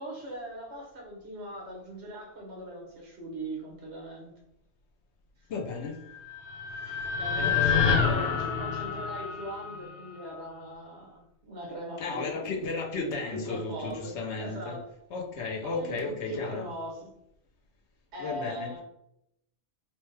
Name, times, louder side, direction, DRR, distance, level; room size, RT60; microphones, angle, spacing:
voice 1, 0.0-4.3 7.2-12.7 12.9-14.9 15.6-17.1 18.1-18.8, right 1 dB, 75° right, -1 dB, 1.4 m, -40 dB
voice 2, 5.5-6.0 6.9-7.0 7.3-8.4 12.0-14.8 15.1-16.6 18.2-18.7, left 3 dB, 85° left, 1 dB, 1.1 m, -34 dB
sound 1, 6.1-10.4, left 6 dB, 65° left, 0.8 m, -28 dB
4.1 x 2.2 x 3.2 m, 0.78 s
omnidirectional pair, 1.1 m